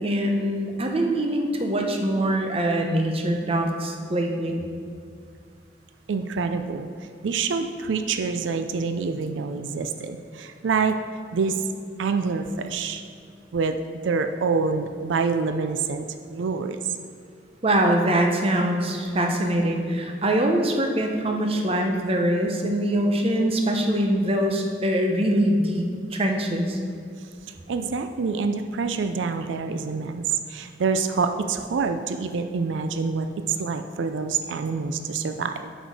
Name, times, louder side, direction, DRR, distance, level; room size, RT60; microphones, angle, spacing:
voice 1, 0.0-4.6 17.6-25.8 26.1-26.8, right 1 dB, 30° right, 2 dB, 0.8 m, -23 dB
voice 2, 6.1-6.9 7.2-11.0 11.3-11.5 12.0-13.0 13.5-13.8 14.0-16.1 16.3-16.8 27.7-30.2 30.5-33.3 33.6-35.7, right 4 dB, 90° right, 7 dB, 0.4 m, -26 dB
7.9 x 6.2 x 4.8 m, 2.2 s
head